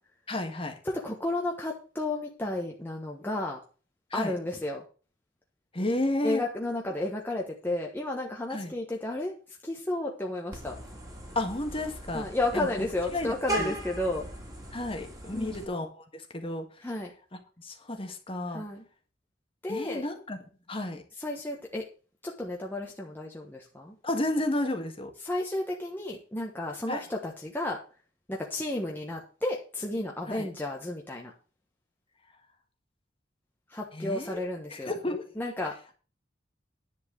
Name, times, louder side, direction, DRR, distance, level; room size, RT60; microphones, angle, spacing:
voice 1, 0.3-0.7 4.1-4.3 5.7-6.4 8.5-8.7 11.4-12.7 13.1-13.8 14.7-16.7 17.6-18.6 19.7-20.4 20.7-21.0 24.0-25.1 26.9-27.0 30.3-30.5 33.9-34.4 34.7-35.3, left 1 dB, 30° left, 5 dB, 1.7 m, -32 dB
voice 2, 0.9-3.6 4.1-4.8 6.2-9.3 9.6-10.7 12.1-14.2 15.3-15.7 16.8-17.1 18.5-18.8 19.6-20.0 21.2-21.8 22.2-23.9 25.2-27.8 28.3-31.3 33.7-34.9 35.4-35.9, left 2 dB, 10° left, -1 dB, 1.3 m, -32 dB
Vehicle horn car horn honking, 10.5-15.6, right 1 dB, 20° right, 2.8 m, -38 dB
10.5 x 4.7 x 7.9 m, 0.37 s
head